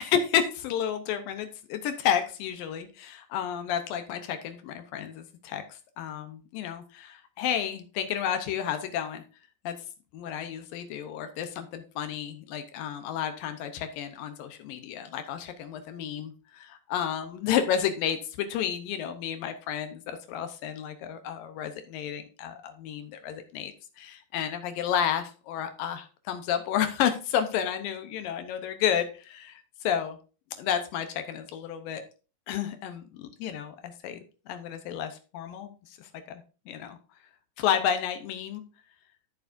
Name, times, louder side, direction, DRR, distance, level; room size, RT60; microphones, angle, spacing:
voice 1, 0.0-5.6 6.0-9.2 9.7-9.8 10.1-20.0 20.3-23.7 24.0-30.2 30.6-32.0 32.5-34.2 34.5-35.7 36.7-37.0 37.6-38.6, left 9 dB, 80° left, 8 dB, 2.5 m, -31 dB
12.5 x 7.0 x 2.6 m, 0.35 s
omnidirectional pair, 4.1 m